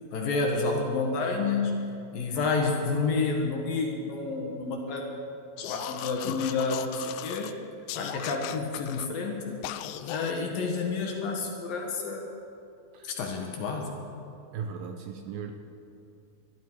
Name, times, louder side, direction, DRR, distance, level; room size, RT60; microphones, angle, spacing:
voice 1, 0.1-1.8 2.1-5.0 5.6-7.5 8.0-9.6 10.1-12.3 13.0-14.0, left 4 dB, 65° left, 1 dB, 2.9 m, -29 dB
sound 1, 5.6-7.5 7.9-9.1 9.6-10.4, left 12 dB, 90° left, 2.9 m, -38 dB
voice 2, 14.5-15.5, right 6 dB, 80° right, 5 dB, 2.0 m, -37 dB
22.0 x 13.5 x 4.7 m, 2.7 s
omnidirectional pair, 5.0 m